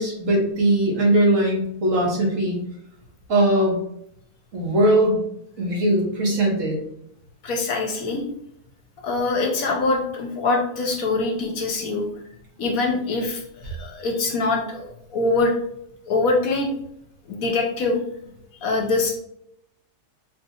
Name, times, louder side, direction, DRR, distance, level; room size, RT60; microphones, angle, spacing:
voice 1, 0.0-2.6 3.3-3.8 4.5-5.2 5.6-6.8, right 1 dB, 55° right, -2 dB, 1.3 m, -20 dB
voice 2, 7.4-8.3 9.0-12.0 12.6-15.5 16.1-16.7 17.3-18.0 18.6-19.2, left 3 dB, 65° left, 2 dB, 1.1 m, -23 dB
4.6 x 2.7 x 2.7 m, 0.73 s
omnidirectional pair, 1.7 m